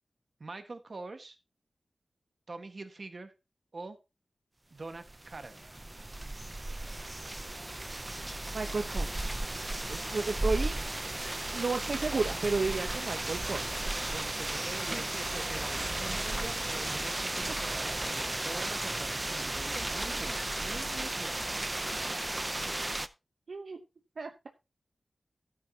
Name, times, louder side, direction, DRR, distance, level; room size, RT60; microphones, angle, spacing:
voice 1, 0.4-1.4 2.5-3.3 3.7-4.0 4.7-5.6 14.0-21.4, right 3 dB, 55° right, 8 dB, 1.6 m, -44 dB
sound 1, 5.0-23.1, right 1 dB, 25° right, 0.6 m, -34 dB
voice 2, 8.5-9.3 9.9-10.7 11.5-13.8 23.5-23.8 24.2-24.5, right 4 dB, 80° right, 5 dB, 0.9 m, -32 dB
12.5 x 9.1 x 2.9 m, 0.26 s
wide cardioid pair, 85°, 0 cm